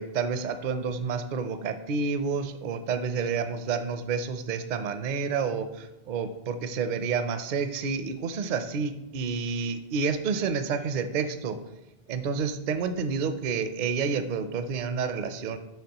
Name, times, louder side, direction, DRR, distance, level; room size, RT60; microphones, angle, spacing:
voice 1, 0.0-11.6 12.1-15.6, right 5 dB, 60° right, 9 dB, 0.6 m, -29 dB
9.2 x 5.7 x 2.9 m, 0.94 s
omnidirectional pair, 1.1 m